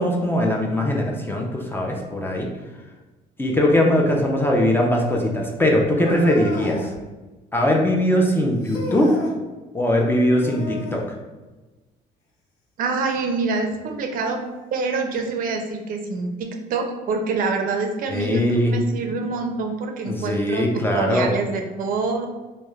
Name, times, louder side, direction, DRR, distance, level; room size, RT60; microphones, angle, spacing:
voice 1, 0.0-2.5 3.4-6.8 7.5-9.1 9.7-11.0 18.1-19.0 20.1-21.3, left 1 dB, 15° left, 0 dB, 0.4 m, -20 dB
sound 1, 5.9-7.0 8.6-9.4 10.4-11.1 13.1-13.2 14.1-14.2 15.2-15.3, left 2 dB, 90° left, 0.6 m, -33 dB
voice 2, 12.8-14.4 14.7-22.3, right 4 dB, 55° right, 4 dB, 0.4 m, -26 dB
2.9 x 2.0 x 2.3 m, 1.2 s
cardioid pair, 110°, 17 cm